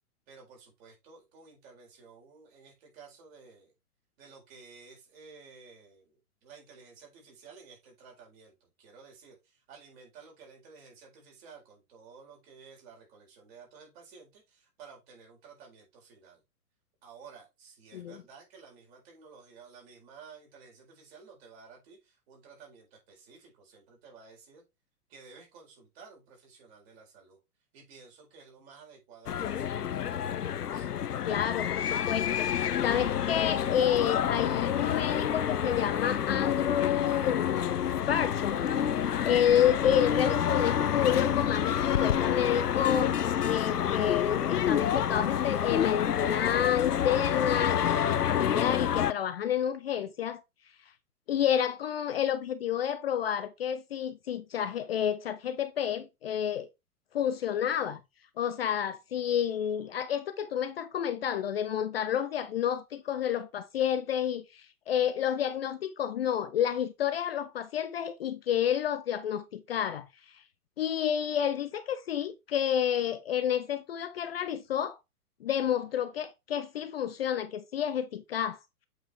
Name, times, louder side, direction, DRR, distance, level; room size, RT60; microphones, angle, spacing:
voice 1, 0.3-3.7 4.2-16.4 17.0-24.6 25.1-27.4 27.7-30.9, right 5 dB, 40° right, 4.3 m, -53 dB
sound 1, 29.3-49.1, left 9 dB, 85° left, 0.6 m, -28 dB
voice 2, 31.2-37.8 38.1-38.7 39.2-43.2 43.4-50.4 51.3-56.7 57.1-58.0 58.4-70.4 70.8-75.0 75.4-78.6, left 9 dB, 40° left, 0.6 m, -30 dB
8.0 x 4.8 x 3.3 m
figure-of-eight pair, 115°, 46 cm